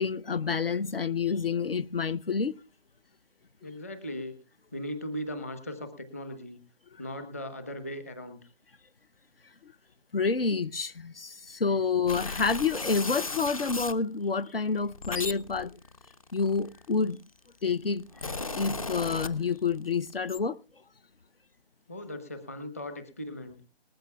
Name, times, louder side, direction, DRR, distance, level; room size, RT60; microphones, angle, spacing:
voice 1, 0.0-2.5 10.1-15.7 16.3-17.2 17.6-18.0 18.5-20.6, left 5 dB, 60° left, 0.7 m, -28 dB
voice 2, 3.6-4.4 4.7-6.6 7.0-8.4 21.9-23.6, equal, 15° left, 1.0 m, -38 dB
sound 1, 12.1-14.0 14.7-17.1 17.8-19.8 20.1-20.4, left 3 dB, 35° left, 0.9 m, -36 dB
20.0 x 14.5 x 2.3 m
figure-of-eight pair, 170°, 32 cm